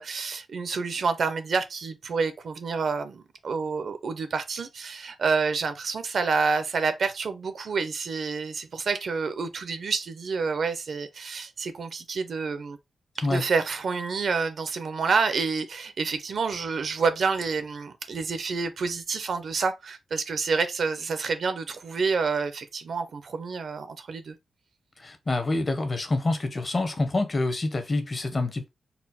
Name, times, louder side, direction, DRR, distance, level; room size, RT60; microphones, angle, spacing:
voice 1, 0.0-12.8 13.3-24.4, right 4 dB, 60° right, 0.7 m, -28 dB
voice 2, 25.0-28.7, left 2 dB, 30° left, 0.8 m, -27 dB
4.2 x 2.1 x 4.0 m
wide cardioid pair, 135°, 0 cm